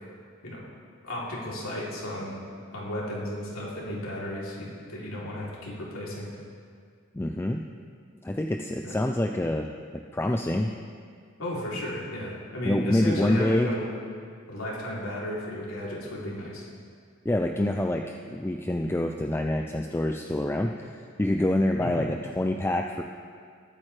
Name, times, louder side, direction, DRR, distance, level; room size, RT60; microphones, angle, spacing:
voice 1, 1.0-2.4 2.7-6.3 8.8-9.0 11.4-13.8 14.5-16.7 21.8-22.0, left 1 dB, 80° left, -5 dB, 3.1 m, -34 dB
voice 2, 7.1-7.6 8.2-9.7 10.1-10.7 12.6-13.7 17.2-23.0, left 1 dB, 10° left, 3 dB, 0.4 m, -26 dB
20.5 x 8.8 x 3.3 m, 2.2 s
head